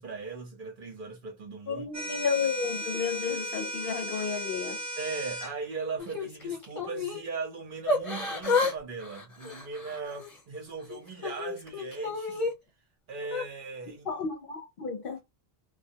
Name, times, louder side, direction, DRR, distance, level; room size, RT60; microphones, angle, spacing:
voice 1, 0.0-1.8 5.0-12.5 13.1-14.1, right 4 dB, 55° right, 0.9 m, -38 dB
voice 2, 1.7-4.8 14.1-15.2, left 6 dB, 65° left, 0.7 m, -32 dB
sound 1, 1.9-5.5, equal, 25° right, 0.4 m, -36 dB
Yell / Crying sobbing, 6.0-7.2 7.9-8.8 9.0-10.4 10.9-12.5 13.2-13.4, left 3 dB, 35° left, 1.0 m, -31 dB
2.2 x 2.2 x 2.7 m
omnidirectional pair, 1.0 m